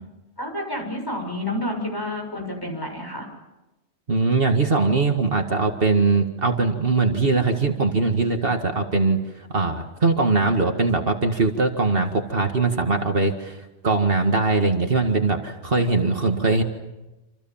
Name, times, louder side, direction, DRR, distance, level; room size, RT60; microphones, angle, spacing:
voice 1, 0.4-3.3, left 1 dB, 20° left, 2 dB, 7.0 m, -29 dB
voice 2, 4.1-13.6 13.8-16.6, right 3 dB, 55° right, 4 dB, 2.2 m, -21 dB
28.0 x 27.5 x 7.4 m, 1.0 s
omnidirectional pair, 1.1 m